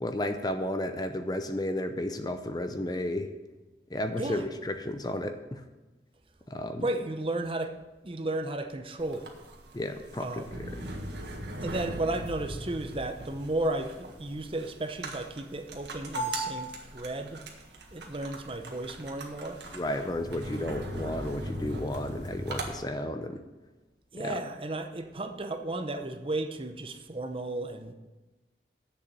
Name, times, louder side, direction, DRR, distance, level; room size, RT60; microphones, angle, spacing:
voice 1, 0.0-3.3 3.9-5.6 6.5-6.9 9.7-10.9 19.7-23.4 24.2-24.4, left 1 dB, 20° left, 8 dB, 0.6 m, -33 dB
voice 2, 6.8-7.7 8.0-9.3 10.2-10.6 11.6-17.4 17.9-19.6 24.1-27.9, right 2 dB, 30° right, 7 dB, 0.7 m, -34 dB
sound 1, 9.0-22.7, right 1 dB, 80° right, 1.7 m, -39 dB
7.9 x 7.0 x 8.4 m, 1.1 s
head